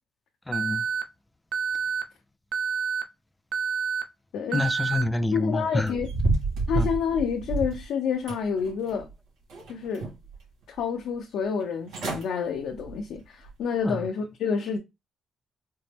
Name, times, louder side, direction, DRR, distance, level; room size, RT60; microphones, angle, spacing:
voice 1, 0.5-0.8 4.5-5.9 6.7-6.9 13.8-14.0, left 2 dB, 15° left, 0.3 m, -27 dB
Alarm, 0.5-1.0 1.5-2.0 2.5-3.0 3.5-4.0 4.5-5.0, right 7 dB, 70° right, 0.5 m, -28 dB
voice 2, 4.3-4.6 5.3-6.1 6.7-9.1 9.7-10.1 10.7-14.8, left 6 dB, 80° left, 0.6 m, -28 dB
sound 1, 5.8-7.8 8.3-9.1 9.5-10.3 10.8-10.9 11.6-11.7 11.9-12.3 12.7-13.0 13.5-13.6, right 3 dB, 85° right, 2.0 m, -29 dB
4.3 x 2.0 x 3.3 m
cardioid pair, 90°, 0 cm